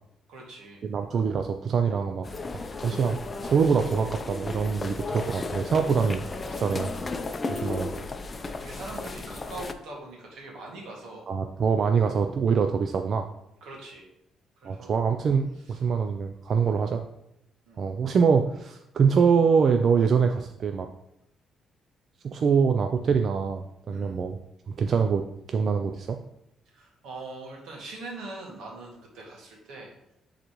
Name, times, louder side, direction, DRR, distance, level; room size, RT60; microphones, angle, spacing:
voice 1, 0.3-0.8 7.4-7.9 8.6-11.3 13.6-14.1 14.6-15.0 15.7-15.8 16.6-16.8 17.7-17.9 23.9-24.2 26.7-29.9, right 2 dB, 85° right, -1 dB, 1.9 m, -42 dB
voice 2, 0.9-2.3 2.8-3.2 3.4-6.2 6.5-6.9 7.5-7.9 11.3-13.3 14.6-17.0 17.8-20.9 22.2-24.4 24.7-26.2, right 6 dB, 55° right, 6 dB, 0.4 m, -24 dB
sound 1, 2.2-9.7, left 3 dB, 30° left, 0.6 m, -34 dB
9.9 x 4.0 x 3.1 m, 0.82 s
cardioid pair, 90°, 0 cm